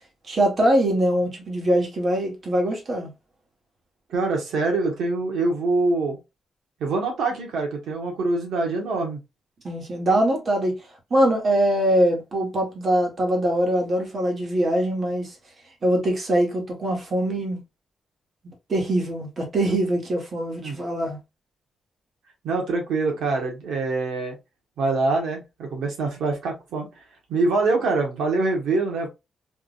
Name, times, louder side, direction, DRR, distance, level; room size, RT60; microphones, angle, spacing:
voice 1, 0.3-3.1 9.6-10.8 11.1-15.4 15.8-17.6 18.7-21.2, right 1 dB, 40° right, 1.3 m, -22 dB
voice 2, 4.1-6.2 6.8-9.2 20.6-20.8 22.4-24.4 24.8-26.9 27.3-29.1, right 3 dB, 85° right, 1.3 m, -24 dB
3.5 x 2.5 x 2.4 m
cardioid pair, 140°, 0 cm